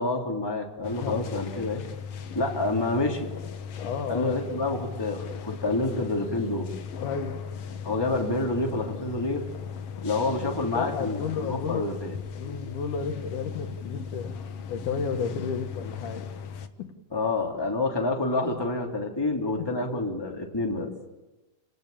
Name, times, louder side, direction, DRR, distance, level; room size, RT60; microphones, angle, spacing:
voice 1, 0.0-1.8 2.3-3.3 4.1-6.7 7.8-9.4 10.0-12.2 17.1-20.9, left 2 dB, 5° left, 3.0 m, -28 dB
sound 1, 0.8-16.7, left 6 dB, 55° left, 2.0 m, -37 dB
voice 2, 3.8-4.3 6.9-7.4 10.7-11.9 12.4-14.4 14.7-16.3 16.8-16.9 19.6-19.7, left 6 dB, 75° left, 3.0 m, -32 dB
29.5 x 19.0 x 8.8 m
omnidirectional pair, 3.7 m